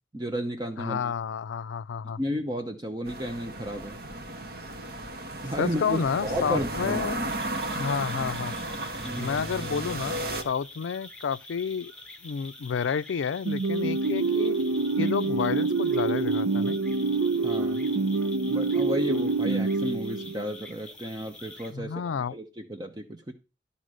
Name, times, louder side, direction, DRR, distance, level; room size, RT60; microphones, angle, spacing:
voice 1, 0.1-1.1 2.2-4.0 5.4-7.0 9.0-9.4 17.4-17.9 18.5-22.0 22.3-23.3, equal, 20° right, 0.8 m, -33 dB
voice 2, 0.8-2.2 5.6-7.2 7.7-8.6 9.2-11.9 12.2-14.6 15.0-16.8 21.7-22.3, left 6 dB, 85° left, 0.4 m, -30 dB
sound 1, 3.1-10.4, right 1 dB, 55° right, 1.4 m, -34 dB
sound 2, 7.3-21.7, left 2 dB, 5° left, 1.5 m, -46 dB
sound 3, 13.5-20.6, right 3 dB, 80° right, 0.6 m, -26 dB
12.5 x 4.3 x 6.3 m
head